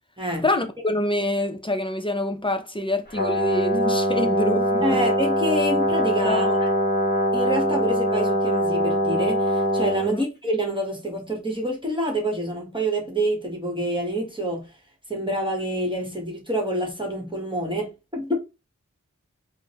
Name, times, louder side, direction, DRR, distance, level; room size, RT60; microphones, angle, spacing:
voice 1, 0.4-4.9 6.2-6.6 10.0-10.2, left 1 dB, 15° left, 0.5 m, -26 dB
Brass instrument, 3.1-10.1, equal, 35° left, 1.5 m, -22 dB
voice 2, 4.8-6.5 7.3-14.7 15.1-18.4, right 1 dB, 15° right, 1.1 m, -27 dB
3.6 x 2.1 x 2.8 m
wide cardioid pair, 55°, 31 cm